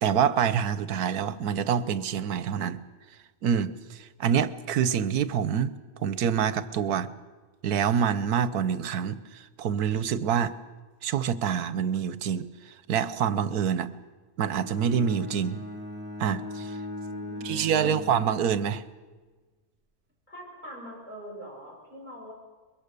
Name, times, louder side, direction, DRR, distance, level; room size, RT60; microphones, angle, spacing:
voice 1, 0.0-2.8 3.4-5.7 6.0-7.1 7.6-10.5 11.0-13.9 14.4-15.6 16.2-16.8 17.4-18.8, right 8 dB, 85° right, 15 dB, 1.4 m, -26 dB
Bowed string instrument, 14.5-18.8, left 1 dB, 5° right, 2.5 m, -38 dB
voice 2, 17.1-17.9 20.3-22.3, equal, 30° left, -4 dB, 8.0 m, -43 dB
23.5 x 22.0 x 6.8 m, 1.4 s
omnidirectional pair, 1.6 m